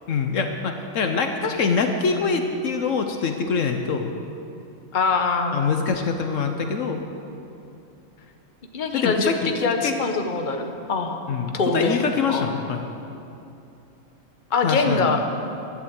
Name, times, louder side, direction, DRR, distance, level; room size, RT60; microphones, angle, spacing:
voice 1, 0.1-4.1 5.5-7.0 8.9-9.5 9.8-9.9 11.3-12.8 14.6-15.1, left 5 dB, 70° left, 5 dB, 1.2 m, -24 dB
voice 2, 4.9-5.7 8.7-11.2 11.5-12.0 12.3-12.5 14.5-15.2, left 4 dB, 40° left, 4 dB, 1.2 m, -23 dB
12.5 x 11.0 x 8.1 m, 2.7 s
omnidirectional pair, 1.4 m